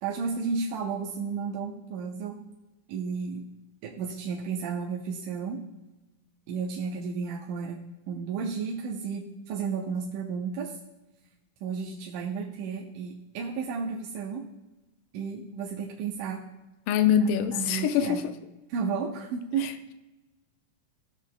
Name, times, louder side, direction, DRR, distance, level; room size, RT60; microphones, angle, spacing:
voice 1, 0.0-2.4 2.9-3.4 3.8-5.6 6.5-10.8 11.6-14.5 15.1-16.4 17.5-18.2 18.7-19.8, right 5 dB, 75° right, -3 dB, 2.2 m, -33 dB
voice 2, 16.9-18.3, left 8 dB, 80° left, 9 dB, 2.2 m, -24 dB
16.0 x 6.6 x 2.2 m, 1.1 s
omnidirectional pair, 3.9 m